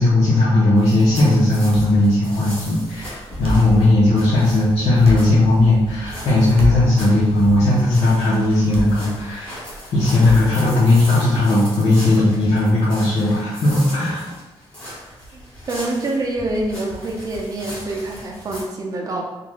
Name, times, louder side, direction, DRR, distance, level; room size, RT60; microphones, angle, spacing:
voice 1, 0.0-9.6 9.9-14.3, left 2 dB, 75° left, -10 dB, 0.9 m, -17 dB
sound 1, 0.6-11.1, equal, 90° right, 0.7 m, -32 dB
sound 2, 0.8-18.6, equal, 10° left, 1.4 m, -38 dB
Engine starting, 3.3-8.8, equal, 30° left, 0.7 m, -35 dB
voice 2, 15.7-19.2, right 2 dB, 35° right, 0 dB, 0.5 m, -26 dB
3.8 x 2.4 x 3.1 m, 1.1 s
wide cardioid pair, 175°, 10 cm